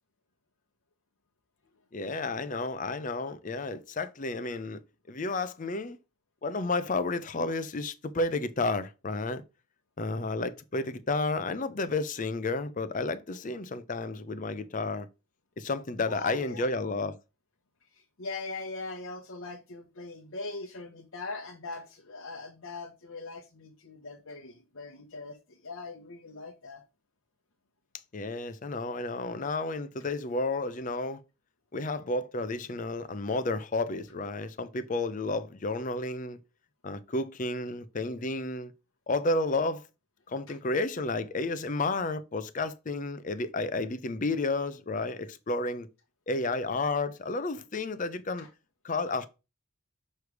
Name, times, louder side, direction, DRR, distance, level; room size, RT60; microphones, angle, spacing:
voice 1, 1.9-4.8 5.1-6.0 6.4-9.4 10.0-15.1 15.6-17.2 28.1-31.2 31.7-36.4 36.8-38.7 39.1-39.8 40.3-45.9 46.3-48.5 48.8-49.3, left 2 dB, 40° left, 0.6 m, -31 dB
voice 2, 16.1-16.7 17.9-26.8 40.5-40.6 48.4-48.5 49.1-49.2, left 3 dB, 70° left, 0.9 m, -41 dB
6.7 x 3.2 x 4.7 m
head